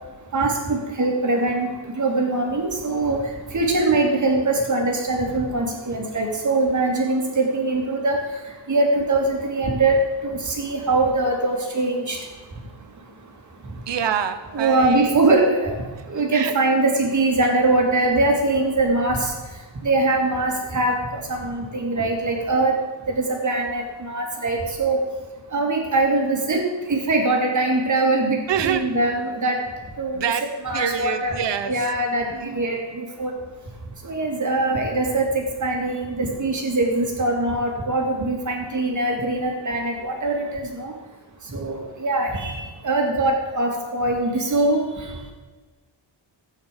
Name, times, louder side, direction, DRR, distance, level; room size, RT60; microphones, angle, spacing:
voice 1, 0.3-1.7 2.0-3.2 3.5-8.2 8.7-12.2 14.5-15.7 16.1-19.3 19.8-22.7 23.1-25.0 25.5-26.6 26.9-29.6 30.0-30.2 30.6-31.3 31.7-33.3 34.0-35.3 35.6-40.9 41.5-45.1, right 2 dB, 40° right, 1 dB, 2.4 m, -22 dB
voice 2, 13.9-15.2 16.3-16.5 28.5-28.9 30.1-30.4 30.7-31.9 32.3-32.7, right 8 dB, 65° right, 10 dB, 1.1 m, -26 dB
15.0 x 8.9 x 5.2 m, 1.3 s
wide cardioid pair, 170°, 46 cm